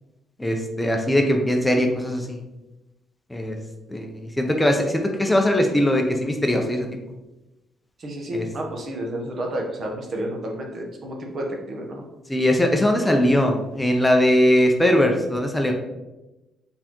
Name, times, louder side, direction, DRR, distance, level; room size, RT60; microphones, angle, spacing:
voice 1, 0.4-2.4 3.3-3.6 3.9-6.9 8.3-8.4 12.3-15.7, left 1 dB, 10° left, 3 dB, 0.5 m, -20 dB
voice 2, 8.0-12.0, right 1 dB, 50° right, 0 dB, 1.0 m, -31 dB
4.0 x 3.5 x 3.0 m, 1.0 s
cardioid pair, 90°, 0 cm